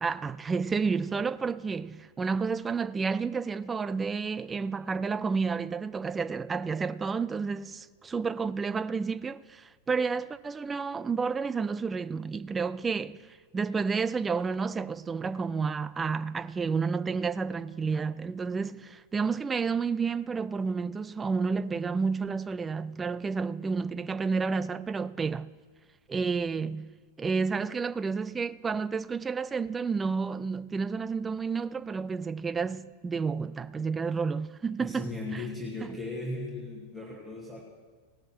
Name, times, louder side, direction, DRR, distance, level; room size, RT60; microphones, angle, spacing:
voice 1, 0.0-13.2 13.5-25.5 26.1-26.9 27.2-35.4 35.8-35.9, right 5 dB, 15° right, 0.4 m, -30 dB
voice 2, 34.8-37.6, left 2 dB, ahead, 1.9 m, -37 dB
17.5 x 6.4 x 6.0 m
figure-of-eight pair, 90°, 0 cm